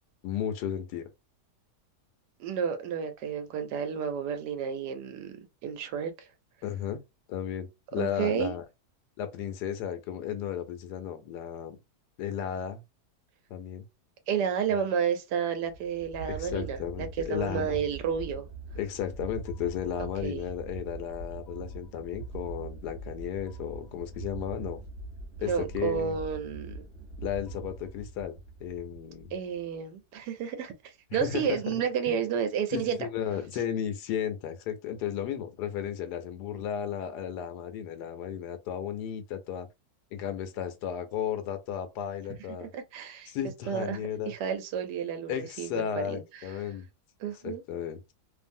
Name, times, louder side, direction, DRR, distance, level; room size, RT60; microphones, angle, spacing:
voice 1, 0.2-1.1 6.6-7.0 7.3-8.6 9.2-11.8 12.2-12.8 13.5-13.8 16.3-17.8 18.7-24.8 25.4-26.2 27.2-29.3 31.1-31.8 32.1-32.2 32.7-39.7 40.1-42.7 43.3-44.3 45.3-46.9 47.3-48.1, left 9 dB, 80° left, 1.2 m, -34 dB
voice 2, 2.4-5.3 5.6-6.3 8.0-8.5 14.3-18.5 20.2-20.4 25.4-26.8 29.3-33.0 42.6-43.3 43.7-46.2 47.2-47.6, right 7 dB, 90° right, 1.2 m, -31 dB
sound 1, 15.6-29.8, right 3 dB, 50° right, 0.8 m, -43 dB
2.7 x 2.5 x 2.6 m
omnidirectional pair, 1.7 m